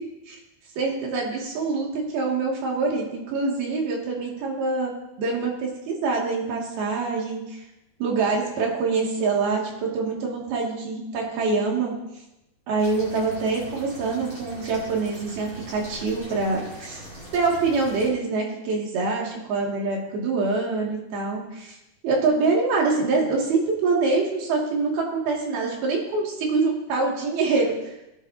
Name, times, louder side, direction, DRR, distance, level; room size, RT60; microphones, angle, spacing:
voice 1, 0.8-4.9 5.2-7.6 8.0-12.0 12.7-17.0 17.3-21.8 22.0-27.9, right 3 dB, 70° right, -2 dB, 4.1 m, -25 dB
sound 1, 12.8-18.1, right 1 dB, 20° right, 5.7 m, -41 dB
21.0 x 10.0 x 2.8 m, 0.91 s
omnidirectional pair, 4.6 m